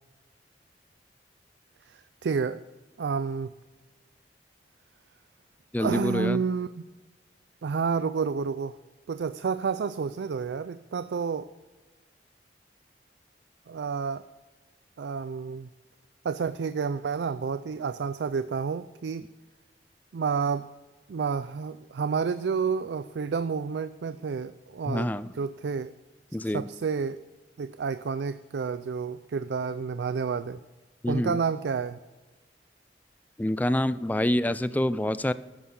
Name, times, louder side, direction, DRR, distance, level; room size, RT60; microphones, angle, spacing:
voice 1, 1.9-2.6 3.0-3.5 5.8-6.8 7.6-8.7 9.1-11.5 13.7-14.2 15.0-15.7 16.2-19.2 20.1-20.7 21.1-25.9 26.5-27.2 27.6-30.6 31.1-32.0, right 5 dB, 75° right, 13 dB, 0.4 m, -30 dB
voice 2, 5.7-6.4 24.9-25.3 26.3-26.7 31.0-31.4 33.4-35.3, left 1 dB, 10° left, 15 dB, 0.3 m, -26 dB
12.5 x 9.7 x 3.8 m, 1.2 s
head